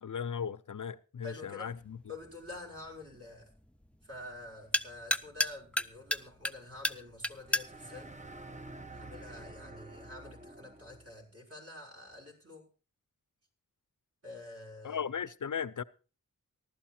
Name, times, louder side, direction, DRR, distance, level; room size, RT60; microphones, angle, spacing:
voice 1, 0.0-2.0 14.8-15.8, left 7 dB, 65° left, 0.7 m, -37 dB
voice 2, 1.2-1.7 2.1-3.5 4.0-8.1 8.9-12.7 14.2-15.0, left 2 dB, 45° right, 5.7 m, -47 dB
sound 1, 1.7-9.3, left 1 dB, 5° left, 0.7 m, -37 dB
sound 2, 7.4-11.2, right 2 dB, 20° right, 1.1 m, -49 dB
15.5 x 12.0 x 4.4 m
wide cardioid pair, 65°, 34 cm